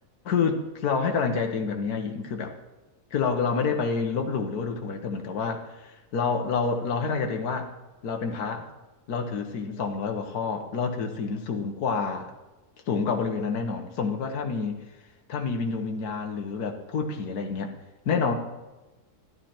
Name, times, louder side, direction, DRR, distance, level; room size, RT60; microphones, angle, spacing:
voice 1, 0.2-2.6 3.1-7.7 8.0-8.7 9.1-12.3 12.9-14.8 15.3-17.7 18.0-18.3, left 5 dB, 75° left, 4 dB, 1.7 m, -28 dB
12.5 x 11.0 x 4.4 m, 1.1 s
omnidirectional pair, 1.7 m